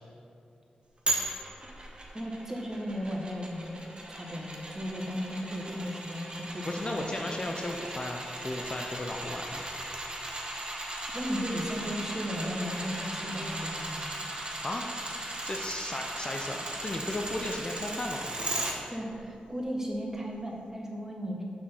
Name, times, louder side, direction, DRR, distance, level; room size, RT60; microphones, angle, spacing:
sound 1, 1.1-18.7 19.2-19.3, right 1 dB, 35° right, 1.1 m, -37 dB
voice 1, 2.1-3.8 4.1-7.2 11.1-14.0 18.9-21.4, equal, 15° right, -1 dB, 1.3 m, -35 dB
voice 2, 6.6-9.7 14.6-15.0 15.4-18.7, left 1 dB, 35° left, 2 dB, 0.5 m, -35 dB
6.0 x 3.8 x 5.5 m, 2.6 s
cardioid pair, 45°, 3 cm